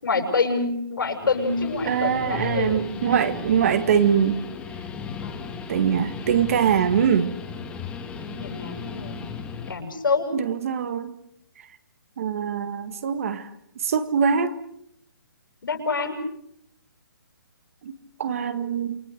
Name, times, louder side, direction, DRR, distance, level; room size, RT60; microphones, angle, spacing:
voice 1, 0.0-3.1 5.2-5.5 8.4-9.2 9.7-10.3 15.6-16.2, left 4 dB, 75° left, 4 dB, 7.5 m, -26 dB
Guitar, 1.0-9.8, left 6 dB, 10° left, 2.3 m, -36 dB
voice 2, 1.8-4.4 5.7-7.4 10.3-11.1 12.2-13.5 13.8-14.5 17.8-17.9 18.2-19.0, right 7 dB, 40° right, 11 dB, 1.9 m, -23 dB
28.5 x 23.5 x 6.6 m, 0.73 s
hypercardioid pair, 165°, 11 cm